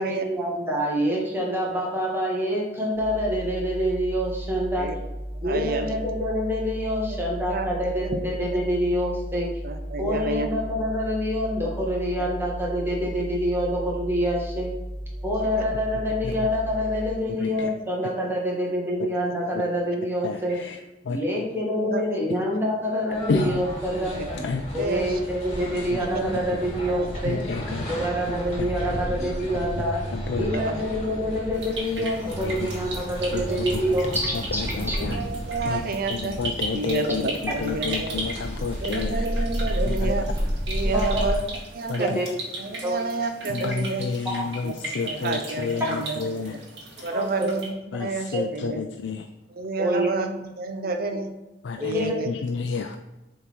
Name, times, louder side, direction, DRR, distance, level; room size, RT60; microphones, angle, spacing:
voice 1, 0.0-4.9 5.4-9.5 10.0-14.7 15.2-20.6 21.1-24.2 24.7-27.4 27.9-30.0 30.3-34.6 34.9-35.0 40.8-41.3 41.9-42.3 42.8-43.0 44.2-44.4 47.1-47.5 48.3-48.4 49.8-50.2 51.8-52.2, equal, 15° right, -2 dB, 1.4 m, -26 dB
sound 1, 2.9-17.1, equal, 35° right, 1.7 m, -35 dB
voice 2, 5.4-5.9 7.1-7.2 7.5-7.7 8.0-8.2 8.5-8.6 9.6-10.5 15.6-15.7 21.8-22.2 24.1-24.3 24.8-25.2 26.0-26.4 27.1-27.2 30.5-30.8 33.5-33.6 34.9-36.4 36.7-38.3 38.8-40.3 40.7-41.4 41.7-42.1 42.6-44.1 44.6-46.2 46.5-46.6 47.0-49.0 49.5-51.3 51.8-52.3, right 3 dB, 55° right, 7 dB, 0.7 m, -30 dB
voice 3, 17.4-17.7 20.2-20.8 21.0-21.2 23.3-23.6 24.4-24.6 27.2-27.9 30.1-30.5 32.0-32.1 32.4-32.6 33.3-33.4 34.3-35.2 35.7-35.8 36.1-37.2 37.6-39.3 39.9-40.1 41.9-42.2 43.5-46.5 47.0-47.1 47.9-49.3 51.6-53.0, left 4 dB, 85° left, 6 dB, 0.4 m, -30 dB
sound 2, 23.1-41.4, equal, 40° left, 2.3 m, -32 dB
sound 3, 31.5-47.7, right 2 dB, 85° right, 1.7 m, -37 dB
6.9 x 3.8 x 4.5 m, 1.0 s
head